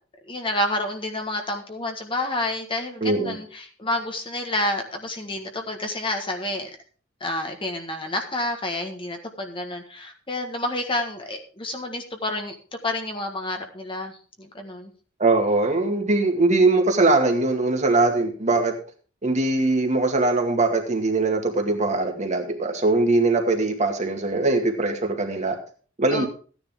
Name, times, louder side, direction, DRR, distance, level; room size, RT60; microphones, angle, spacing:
voice 1, 0.3-6.7 7.2-12.5 12.8-14.9 26.1-26.3, left 1 dB, 25° left, 4 dB, 1.6 m, -29 dB
voice 2, 3.0-3.4 15.2-18.7 19.2-25.6 26.0-26.3, right 2 dB, 40° right, 3 dB, 2.0 m, -21 dB
14.5 x 9.9 x 3.7 m, 0.39 s
head